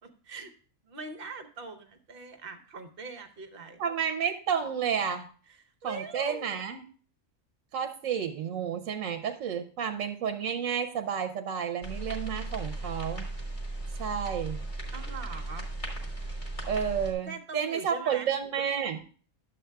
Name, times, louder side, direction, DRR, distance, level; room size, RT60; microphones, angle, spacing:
voice 1, 0.0-0.5 0.8-3.8 5.5-6.6 14.9-15.7 17.3-18.3, right 4 dB, 50° right, 7 dB, 1.0 m, -42 dB
voice 2, 3.8-5.3 5.8-6.8 7.7-13.3 14.0-14.6 16.7-19.0, right 7 dB, 80° right, 6 dB, 1.0 m, -31 dB
sound 1, 11.8-17.1, right 2 dB, 35° left, 2.0 m, -36 dB
11.5 x 7.7 x 2.3 m, 0.41 s
omnidirectional pair, 1.3 m